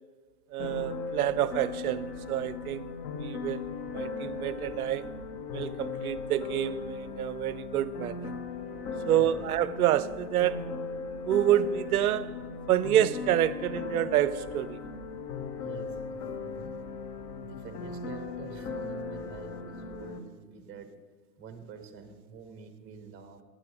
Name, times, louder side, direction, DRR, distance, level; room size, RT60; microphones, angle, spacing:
voice 1, 0.5-2.9 3.2-3.7 3.9-5.1 5.5-8.3 9.1-10.7 11.3-12.4 12.7-14.8, right 12 dB, 60° right, 0.6 m, -28 dB
sound 1, 0.6-20.2, left 4 dB, 30° left, 0.7 m, -38 dB
voice 2, 9.2-9.6 15.5-16.8 17.4-20.9 21.4-23.4, right 6 dB, 25° right, 1.1 m, -47 dB
8.9 x 8.8 x 4.9 m
figure-of-eight pair, 110°, 49 cm